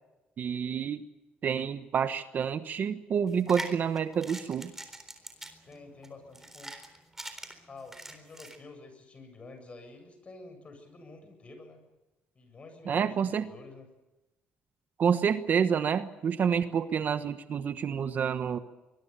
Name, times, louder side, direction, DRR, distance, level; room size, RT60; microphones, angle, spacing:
voice 1, 0.4-1.0 1.4-4.7 12.9-13.5 15.0-18.6, right 7 dB, 50° right, 10 dB, 1.2 m, -28 dB
sound 1, 3.3-8.6, right 2 dB, 10° right, 3.9 m, -43 dB
voice 2, 5.6-6.8 7.7-11.8 12.3-13.9, left 3 dB, 30° left, 7 dB, 7.8 m, -49 dB
24.0 x 22.5 x 6.9 m, 1.0 s
cardioid pair, 120°, 4 cm